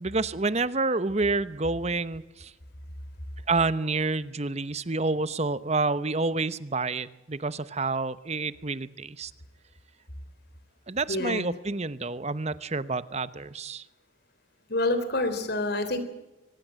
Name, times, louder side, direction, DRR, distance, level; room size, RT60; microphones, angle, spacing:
voice 1, 0.0-2.5 3.5-9.3 10.9-13.8, right 3 dB, 35° right, 15 dB, 0.9 m, -28 dB
voice 2, 11.1-11.4 14.7-16.0, left 2 dB, 55° left, 10 dB, 3.6 m, -27 dB
24.0 x 20.0 x 7.6 m, 1.0 s
head